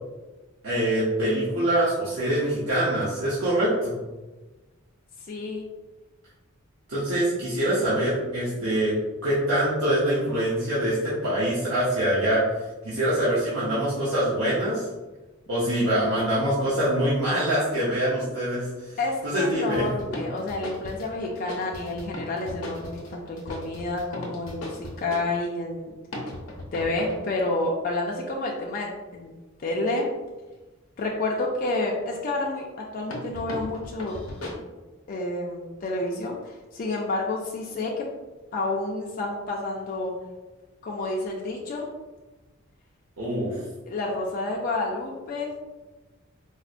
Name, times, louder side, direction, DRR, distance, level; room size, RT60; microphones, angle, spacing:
voice 1, 0.6-4.0 6.9-8.9 9.2-12.4 12.8-14.8 15.5-18.9 19.2-19.9 43.2-43.5, right 1 dB, 80° right, -10 dB, 0.8 m, -24 dB
voice 2, 5.3-5.6 8.6-8.8 19.0-25.9 26.7-29.3 29.6-30.1 31.0-34.2 35.1-38.1 38.5-40.1 40.8-41.9 43.9-45.6, left 2 dB, 45° left, -2 dB, 0.4 m, -29 dB
sound 1, 19.5-25.3 26.1-27.3 33.1-34.5, left 1 dB, 90° left, 0.7 m, -37 dB
4.1 x 2.1 x 2.4 m, 1.2 s
head